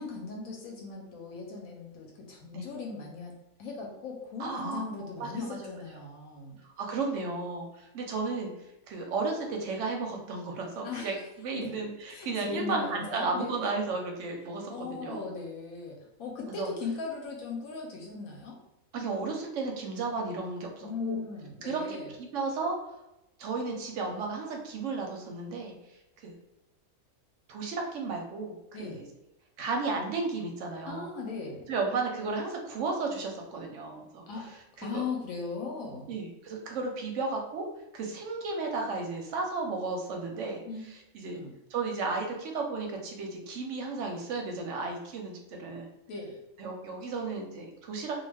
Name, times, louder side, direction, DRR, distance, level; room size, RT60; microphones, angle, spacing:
voice 1, 0.0-3.3 3.6-6.6 10.8-11.2 11.5-11.7 12.1-13.7 14.7-18.6 20.8-22.1 28.7-29.0 30.9-31.7 34.3-34.5 34.8-36.1 40.6-40.8 41.3-41.5 46.1-46.4, left 4 dB, 75° left, 0 dB, 1.0 m, -38 dB
voice 2, 4.4-5.7 6.6-8.5 8.9-15.3 16.5-16.7 18.9-21.2 21.6-22.8 23.4-25.7 26.2-26.3 27.5-29.0 29.6-31.1 31.7-34.3 34.8-35.0 36.1-37.7 37.9-40.6 41.1-41.4 41.7-45.9 46.6-48.2, right 3 dB, 65° right, 2 dB, 0.8 m, -34 dB
2.4 x 2.2 x 3.2 m, 0.88 s
omnidirectional pair, 1.6 m